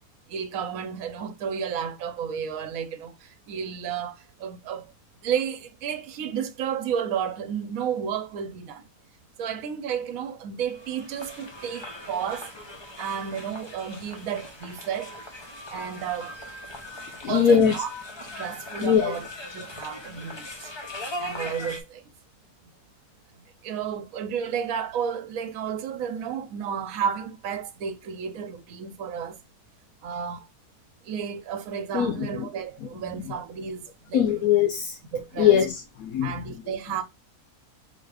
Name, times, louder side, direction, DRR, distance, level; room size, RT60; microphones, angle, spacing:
voice 1, 0.3-4.9 5.2-8.9 9.4-12.5 13.0-15.2 15.7-16.3 17.3-17.9 18.2-19.2 19.5-22.1 23.3-29.4 30.0-30.5 31.0-34.5 35.1-35.6 36.2-37.0, right 8 dB, 75° right, 1.1 m, -32 dB
sound 1, 10.6-21.8, left 1 dB, 30° left, 0.5 m, -40 dB
voice 2, 17.2-18.0 18.8-19.1 31.9-32.5 33.2-33.3 34.1-35.0 35.4-36.5, left 8 dB, 80° left, 1.1 m, -22 dB
4.0 x 2.5 x 4.7 m
omnidirectional pair, 1.5 m